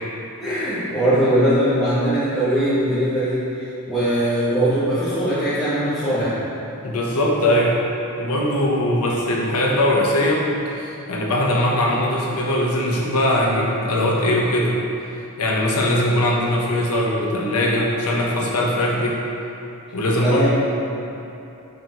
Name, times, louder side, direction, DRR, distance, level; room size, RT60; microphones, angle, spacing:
voice 1, 0.4-6.4 20.2-20.5, right 1 dB, ahead, -17 dB, 1.2 m, -20 dB
voice 2, 6.8-7.8 8.2-14.8 15.4-19.2 19.9-20.5, left 1 dB, 80° left, -2 dB, 0.9 m, -20 dB
5.2 x 4.6 x 3.9 m, 3.0 s
head